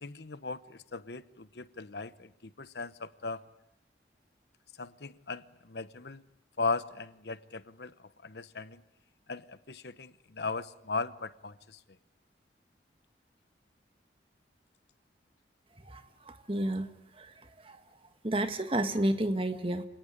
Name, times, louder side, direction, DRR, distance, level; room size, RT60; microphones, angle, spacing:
voice 1, 0.0-2.3 2.6-3.4 4.8-6.2 6.6-7.9 8.2-8.8 9.3-11.8, left 3 dB, 65° left, 14 dB, 1.0 m, -37 dB
voice 2, 16.5-16.9 17.7-17.8 18.2-19.9, right 1 dB, 30° right, 9 dB, 1.5 m, -29 dB
27.5 x 18.0 x 10.0 m, 0.81 s
head